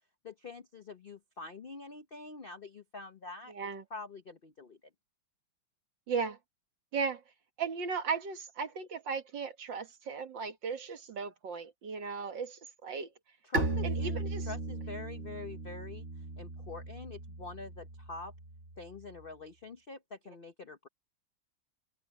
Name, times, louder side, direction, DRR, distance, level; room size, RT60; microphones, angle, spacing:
voice 1, 0.2-4.8 13.4-16.1 16.4-18.3 18.8-20.9, left 4 dB, 65° left, 0.5 m, -46 dB
voice 2, 3.5-3.8 6.1-6.4 6.9-7.2 7.6-13.1 13.8-14.5, right 5 dB, 60° right, 2.2 m, -36 dB
Bowed string instrument, 13.5-19.1, right 2 dB, 35° right, 2.0 m, -37 dB
omnidirectional pair, 2.3 m